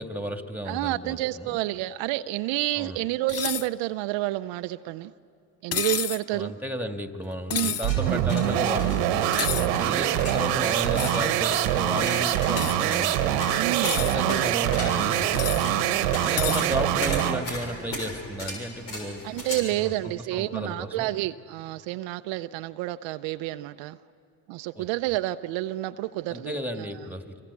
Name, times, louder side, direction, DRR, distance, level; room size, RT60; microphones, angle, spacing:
voice 1, 0.0-1.6 2.8-3.0 6.3-13.4 13.9-15.8 16.2-19.2 19.5-21.1 24.8-25.1 26.3-27.4, equal, 5° right, 7 dB, 2.1 m, -34 dB
voice 2, 0.7-5.1 5.6-6.5 7.5-7.8 12.4-12.7 13.5-14.5 19.2-24.0 24.5-26.5, right 16 dB, 70° right, 10 dB, 0.7 m, -29 dB
sound 1, 3.3-3.7 5.7-6.2 7.5-7.9 9.3-9.7 10.9-11.2 12.6-12.8 13.7-14.2 15.3-15.7 16.4-16.7, left 9 dB, 30° left, 0.6 m, -30 dB
sound 2, 7.6-19.5, left 1 dB, 85° left, 6.9 m, -37 dB
sound 3, 7.8-17.5, right 12 dB, 90° right, 1.3 m, -24 dB
26.0 x 25.5 x 8.3 m, 2.5 s
supercardioid pair, 75°, 47 cm